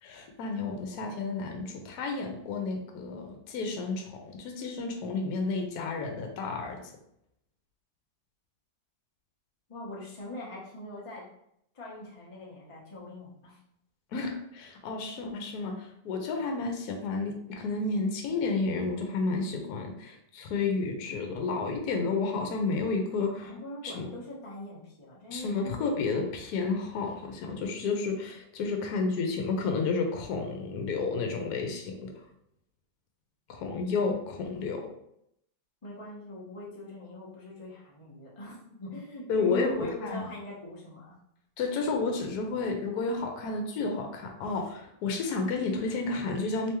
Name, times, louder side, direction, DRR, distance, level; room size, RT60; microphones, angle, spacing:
voice 1, 0.0-6.9 14.1-23.5 23.8-24.1 25.3-32.3 33.5-34.9 39.3-40.3 41.6-46.7, left 4 dB, 70° left, 3 dB, 1.2 m, -31 dB
voice 2, 9.7-11.3 11.7-13.6 23.2-26.2 35.8-41.2, left 1 dB, 25° left, -6 dB, 0.7 m, -42 dB
3.4 x 3.3 x 3.0 m, 0.76 s
omnidirectional pair, 1.8 m